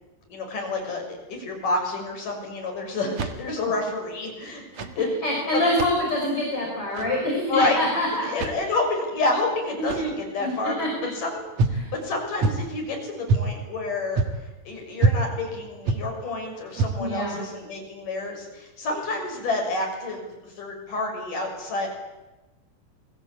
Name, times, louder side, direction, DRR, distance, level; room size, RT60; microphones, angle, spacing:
voice 1, 0.3-5.1 5.5-5.6 7.5-7.8 8.1-11.4 11.7-21.9, left 3 dB, 45° left, 1 dB, 7.8 m, -29 dB
sound 1, 3.0-3.7 4.6-5.0 5.6-6.0 6.8-7.2 8.3-8.7 9.8-10.2 11.6-11.9 12.4-12.8 13.3-13.5 14.1-14.5 15.0-15.3 15.8-16.1 16.7-17.1, right 3 dB, 60° right, 2.0 m, -25 dB
voice 2, 5.2-8.3 10.0-10.1 10.4-10.5 10.8-10.9 11.7-11.9 17.0-17.4, left 1 dB, 30° left, -2 dB, 6.4 m, -25 dB
29.0 x 23.0 x 8.7 m, 1.1 s
omnidirectional pair, 5.3 m